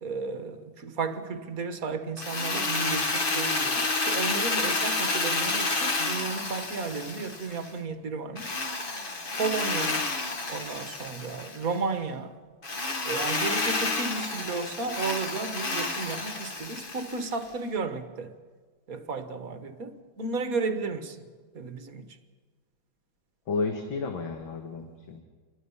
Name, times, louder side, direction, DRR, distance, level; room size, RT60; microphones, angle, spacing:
voice 1, 0.0-8.5 9.3-10.1 10.5-12.4 13.0-18.3 18.9-21.2 21.5-22.1, right 4 dB, 50° right, 1.7 m, -33 dB
Drill, 2.2-7.7 8.4-11.7 12.6-17.4, left 3 dB, 30° left, 1.2 m, -30 dB
voice 2, 23.5-25.2, left 4 dB, 80° left, 2.3 m, -32 dB
28.5 x 21.5 x 5.6 m
omnidirectional pair, 2.1 m